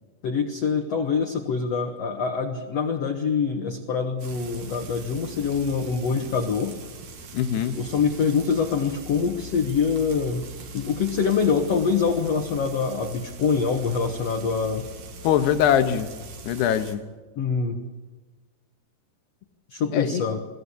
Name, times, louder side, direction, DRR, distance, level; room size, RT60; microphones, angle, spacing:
voice 1, 0.2-6.7 7.8-14.9 17.4-17.8 19.7-20.4, left 5 dB, 55° left, 4 dB, 1.9 m, -25 dB
Frying (food), 4.2-17.0, right 2 dB, 55° right, 3.2 m, -42 dB
voice 2, 7.3-7.8 15.2-16.1 16.5-17.0 19.9-20.2, left 9 dB, 85° left, 9 dB, 3.3 m, -22 dB
23.5 x 14.5 x 8.3 m, 1.4 s
omnidirectional pair, 4.6 m